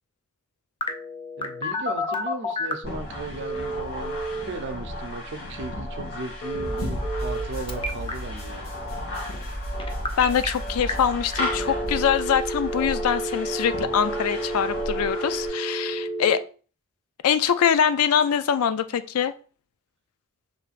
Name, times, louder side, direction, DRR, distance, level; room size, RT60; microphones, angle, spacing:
Telephone, 0.8-2.9 3.4-4.4 6.4-7.4 7.7-8.1 9.8-10.5 10.9-11.0 11.3-16.4, equal, 25° left, 0.5 m, -30 dB
voice 1, 1.4-8.7, right 2 dB, 55° right, 0.6 m, -36 dB
sound 1, 2.8-15.5, left 1 dB, 65° left, 1.9 m, -34 dB
sound 2, 6.6-13.3, equal, 45° left, 1.5 m, -35 dB
voice 2, 10.2-16.4 17.2-19.3, left 8 dB, 85° left, 0.4 m, -23 dB
5.5 x 3.3 x 2.5 m
head